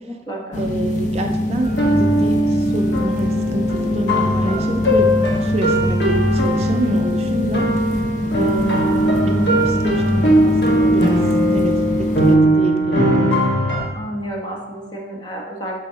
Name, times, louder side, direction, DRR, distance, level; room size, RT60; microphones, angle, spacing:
voice 1, 0.0-0.7 13.9-15.8, right 1 dB, 25° left, -2 dB, 1.4 m, -31 dB
sound 1, 0.5-12.4, left 1 dB, 45° left, 0.6 m, -23 dB
voice 2, 0.5-5.1 5.4-7.7 8.3-11.2 11.5-13.4, right 2 dB, 35° right, 4 dB, 0.4 m, -27 dB
sound 2, 1.6-13.9, right 1 dB, 70° left, 1.4 m, -19 dB
8.4 x 6.2 x 2.8 m, 1.3 s
head